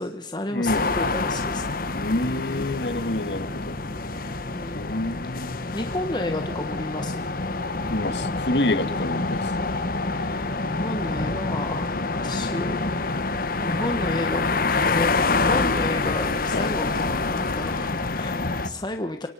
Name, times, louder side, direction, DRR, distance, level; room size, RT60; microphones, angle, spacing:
voice 1, 0.0-1.6 4.5-4.9 5.3-7.2 9.1-9.3 10.0-13.2 13.6-19.3, left 1 dB, 25° left, 6 dB, 1.3 m, -32 dB
voice 2, 0.5-0.9 1.9-3.7 4.7-5.6 7.9-9.4 11.9-12.1 16.5-16.7, left 1 dB, 70° left, 11 dB, 1.8 m, -27 dB
sound 1, 0.7-18.7, left 3 dB, 55° left, 1.3 m, -27 dB
27.5 x 24.5 x 5.7 m, 0.77 s
head